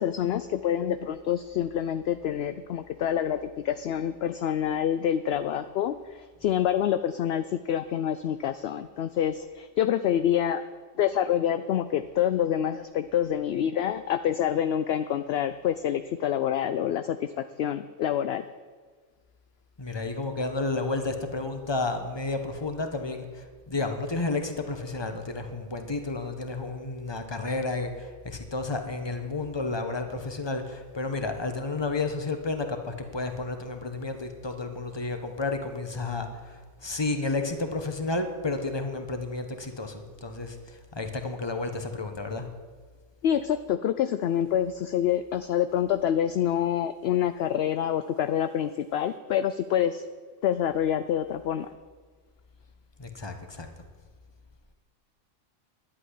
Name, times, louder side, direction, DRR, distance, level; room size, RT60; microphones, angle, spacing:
voice 1, 0.0-10.6 11.0-18.4 43.2-50.0 50.4-51.7, left 10 dB, 65° left, 11 dB, 0.7 m, -27 dB
voice 2, 19.8-42.5 53.0-53.7, left 3 dB, 20° left, 6 dB, 1.2 m, -31 dB
11.0 x 8.7 x 9.9 m, 1.5 s
omnidirectional pair, 1.3 m